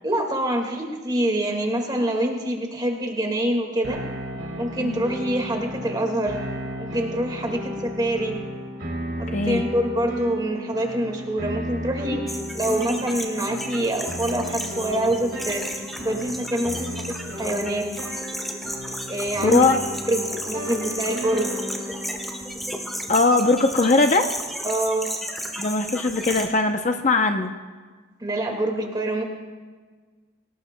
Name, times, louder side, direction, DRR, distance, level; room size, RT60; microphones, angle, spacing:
voice 1, 0.0-4.0 4.6-6.4 6.8-8.4 9.2-17.0 17.4-17.9 19.1-19.7 20.1-21.5 24.6-25.1 28.2-29.2, right 1 dB, 20° right, 2 dB, 1.9 m, -25 dB
sound 1, 3.8-23.1, equal, 55° right, 2.8 m, -34 dB
voice 2, 9.3-9.6 19.4-19.8 23.1-24.3 25.6-27.5, left 3 dB, 35° left, 5 dB, 0.6 m, -20 dB
sound 2, 12.3-26.5, equal, ahead, 1.4 m, -33 dB
26.5 x 18.5 x 2.2 m, 1.5 s
head